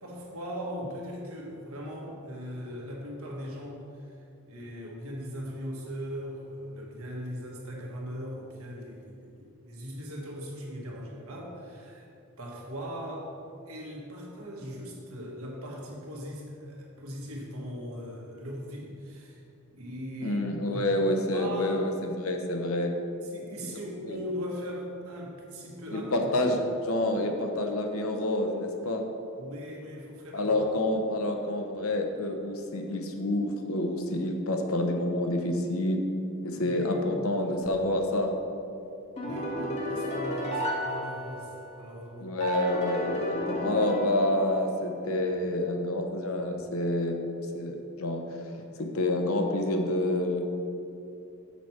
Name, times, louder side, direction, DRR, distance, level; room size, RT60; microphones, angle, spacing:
voice 1, 0.0-12.1 12.4-13.3 13.7-19.4 19.7-20.9 21.3-21.8 23.2-26.3 29.4-30.5 36.7-37.3 39.2-42.3, equal, 85° right, -2 dB, 1.5 m, -39 dB
voice 2, 20.2-22.9 24.1-24.2 25.9-29.0 30.3-36.0 36.4-38.3 42.2-47.2 47.5-48.4 48.8-50.4, left 1 dB, 75° left, 4 dB, 0.8 m, -28 dB
sound 1, 39.2-41.8 42.4-44.9, equal, 30° left, 1.1 m, -33 dB
7.0 x 4.6 x 5.9 m, 2.7 s
head